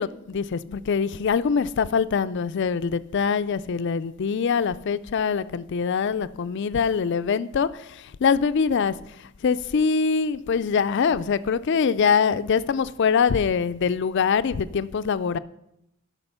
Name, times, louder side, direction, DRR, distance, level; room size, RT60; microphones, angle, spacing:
voice 1, 0.0-8.9 9.4-15.4, left 6 dB, 55° left, 0.4 m, -23 dB
12.5 x 5.8 x 5.6 m
head